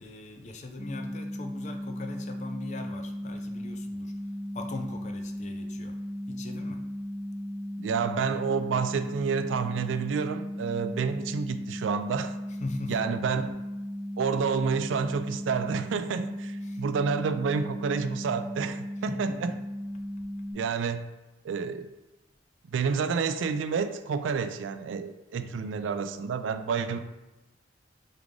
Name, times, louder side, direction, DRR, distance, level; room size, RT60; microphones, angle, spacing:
voice 1, 0.0-4.1 4.5-6.0 6.3-6.9 12.5-13.1 16.6-16.8 19.1-19.6 25.4-25.7, left 2 dB, 40° left, 5 dB, 0.4 m, -40 dB
sound 1, 0.8-20.5, equal, 50° right, 1.2 m, -36 dB
voice 2, 7.8-12.3 12.9-13.5 14.2-19.5 20.5-21.0 21.4-21.9 22.7-27.0, right 5 dB, 85° right, 10 dB, 0.3 m, -29 dB
3.6 x 3.3 x 3.7 m, 1.0 s
head